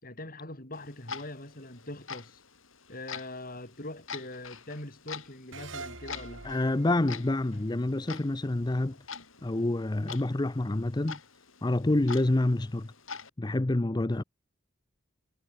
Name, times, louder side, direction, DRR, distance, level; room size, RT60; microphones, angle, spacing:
voice 1, 0.0-2.4 2.9-6.8, left 1 dB, 45° left, 6.2 m, -42 dB
Clock, 0.7-13.3, left 6 dB, 85° left, 7.7 m, -46 dB
sound 1, 5.5-8.8, right 3 dB, 70° right, 7.5 m, -46 dB
voice 2, 6.4-9.0 9.4-11.2 11.6-12.9 13.4-14.2, left 2 dB, 20° left, 0.5 m, -27 dB
head